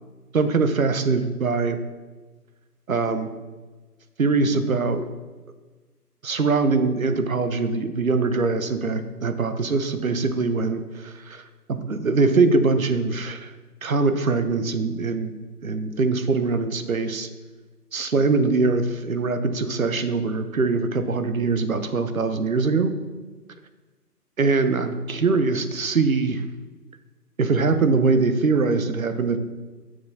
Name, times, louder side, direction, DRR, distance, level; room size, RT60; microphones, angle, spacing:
voice 1, 0.3-1.8 2.9-3.3 4.2-5.1 6.2-11.4 11.7-13.5 13.8-15.3 15.6-17.3 17.9-22.9 24.4-26.4 27.4-29.4, right 4 dB, 60° right, 9 dB, 0.9 m, -22 dB
9.3 x 6.3 x 4.1 m, 1.3 s
figure-of-eight pair, 155°, 48 cm